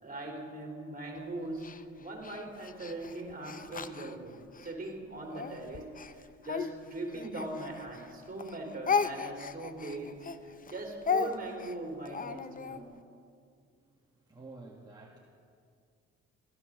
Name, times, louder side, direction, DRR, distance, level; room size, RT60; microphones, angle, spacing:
voice 1, 0.0-5.9 6.4-10.2 10.4-12.9, right 2 dB, 30° right, 1 dB, 3.8 m, -40 dB
Speech, 1.6-4.7 5.3-8.1 8.4-12.8, left 6 dB, 30° left, 0.7 m, -35 dB
voice 2, 13.8-15.2, right 3 dB, 15° right, -3 dB, 1.9 m, -51 dB
16.5 x 13.0 x 6.6 m, 2.3 s
cardioid pair, 90°, 30 cm